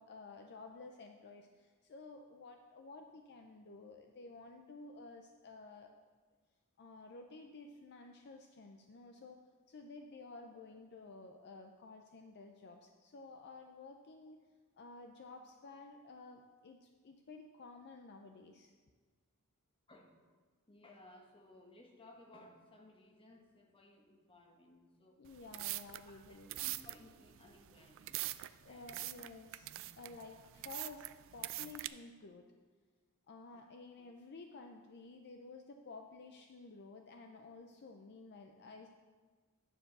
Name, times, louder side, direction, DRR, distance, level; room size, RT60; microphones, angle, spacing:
voice 1, 0.0-5.9 6.8-9.4 9.7-14.4 14.8-18.7 25.2-26.5 28.6-31.1 31.3-32.5 33.3-38.9, left 3 dB, 50° left, 4 dB, 0.5 m, -53 dB
voice 2, 20.7-25.2 26.0-28.2 28.7-29.1 32.9-33.0 33.5-33.6 34.0-34.1, left 2 dB, 25° left, 2 dB, 1.1 m, -60 dB
sound 1, 25.2-31.9, right 16 dB, 60° right, 0.3 m, -44 dB
10.0 x 4.6 x 6.6 m, 1.4 s
head